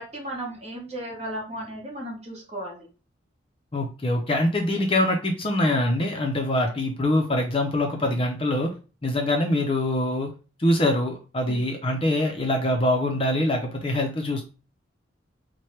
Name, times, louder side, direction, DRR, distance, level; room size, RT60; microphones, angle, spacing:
voice 1, 0.0-2.9 11.5-11.6, right 1 dB, 35° right, -2 dB, 1.2 m, -35 dB
voice 2, 3.7-8.7 9.0-10.3 10.6-14.4, left 1 dB, 30° left, 2 dB, 0.5 m, -24 dB
4.4 x 2.2 x 3.2 m, 0.34 s
head